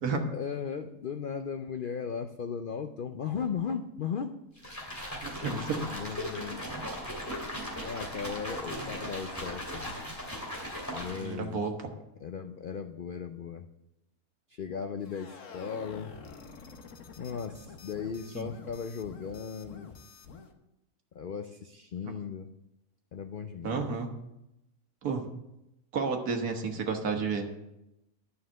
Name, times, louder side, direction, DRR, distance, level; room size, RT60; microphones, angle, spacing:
voice 1, 0.3-4.4 5.4-6.7 7.8-10.0 10.9-11.6 12.2-13.6 14.5-16.1 17.2-19.9 21.1-22.5 23.1-23.8, left 6 dB, 75° left, 7 dB, 0.4 m, -37 dB
sound 1, 4.6-11.5, equal, 10° left, 2.5 m, -38 dB
voice 2, 5.2-5.8 8.7-8.9 11.2-11.7 18.3-18.5 23.6-24.1 25.0-25.3 25.9-27.5, right 5 dB, 75° right, 4 dB, 1.8 m, -31 dB
sound 2, 15.0-20.5, left 5 dB, 60° left, 1.3 m, -48 dB
11.5 x 5.7 x 7.5 m, 0.90 s
omnidirectional pair, 1.6 m